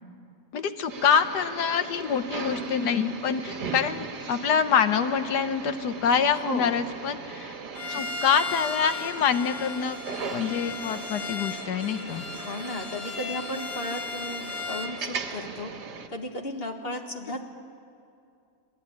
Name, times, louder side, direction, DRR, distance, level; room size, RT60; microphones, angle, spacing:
voice 1, 0.5-7.6 7.9-10.0 10.3-12.3 17.3-17.4, left 7 dB, 75° left, 10 dB, 1.6 m, -26 dB
sound 1, 0.9-16.1, right 5 dB, 80° right, 2.1 m, -39 dB
voice 2, 6.3-6.8 12.3-15.7 16.1-17.4, left 1 dB, 35° left, 4 dB, 1.9 m, -35 dB
Bowed string instrument, 7.7-15.0, left 4 dB, 60° left, 1.8 m, -36 dB
26.0 x 18.0 x 9.7 m, 2.5 s
omnidirectional pair, 1.8 m